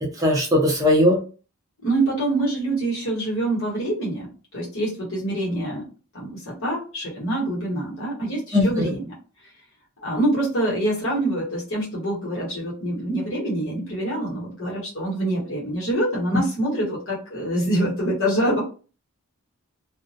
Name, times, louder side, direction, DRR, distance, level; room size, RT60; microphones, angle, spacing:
voice 1, 0.0-1.2 8.5-8.9, left 1 dB, 15° right, -1 dB, 0.5 m, -19 dB
voice 2, 1.8-5.9 6.1-9.0 10.0-18.6, right 1 dB, 60° left, -5 dB, 1.1 m, -25 dB
2.3 x 2.0 x 2.6 m, 0.36 s
head